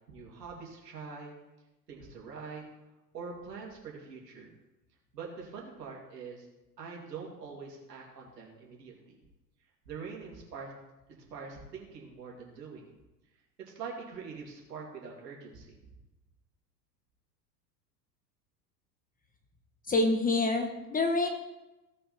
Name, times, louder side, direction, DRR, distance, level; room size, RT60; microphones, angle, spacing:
voice 1, 0.1-1.3 1.9-2.6 3.1-4.5 5.1-6.5 6.8-9.2 9.8-10.7 11.1-12.9 13.6-15.9, right 5 dB, 75° right, -2 dB, 2.9 m, -44 dB
voice 2, 19.9-21.3, left 2 dB, 15° left, 5 dB, 1.0 m, -27 dB
16.5 x 5.6 x 4.3 m, 1.0 s
figure-of-eight pair, 85°, 50 cm